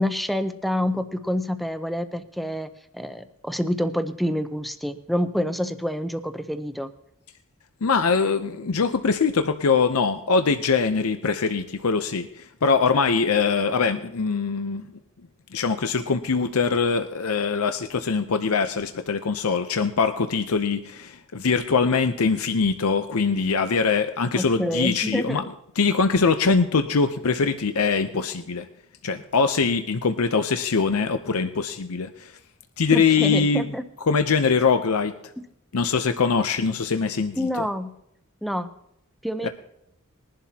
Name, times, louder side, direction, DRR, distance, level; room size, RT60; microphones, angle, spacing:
voice 1, 0.0-6.9 24.3-25.5 32.9-33.8 37.4-37.9 38.4-38.7 39.2-39.5, equal, ahead, 9 dB, 0.6 m, -27 dB
voice 2, 7.8-14.9 15.5-25.4 25.8-28.7 29.0-32.4 32.8-33.7 34.1-35.1 35.7-37.7 39.4-39.5, left 5 dB, 85° left, 8 dB, 0.7 m, -22 dB
21.0 x 11.0 x 2.9 m, 0.78 s
head